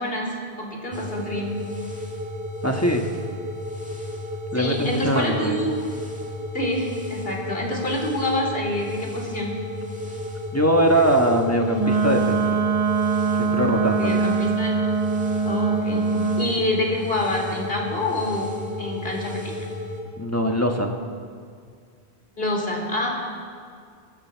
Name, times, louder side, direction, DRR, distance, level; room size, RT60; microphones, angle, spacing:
voice 1, 0.0-1.5 4.5-5.7 6.5-9.6 14.0-14.8 15.4-16.1 16.4-18.5 18.8-19.6 22.4-23.1, left 1 dB, 65° left, 0 dB, 3.3 m, -27 dB
sound 1, 0.9-20.0, left 1 dB, 5° right, 1.9 m, -33 dB
voice 2, 2.6-3.0 4.5-5.6 10.5-12.6 13.4-14.1 20.2-20.9, right 1 dB, 15° left, 2 dB, 1.3 m, -21 dB
Wind instrument woodwind instrument, 11.7-16.5, right 5 dB, 40° right, 0.7 m, -23 dB
23.5 x 13.0 x 4.6 m, 2.2 s
omnidirectional pair, 1.0 m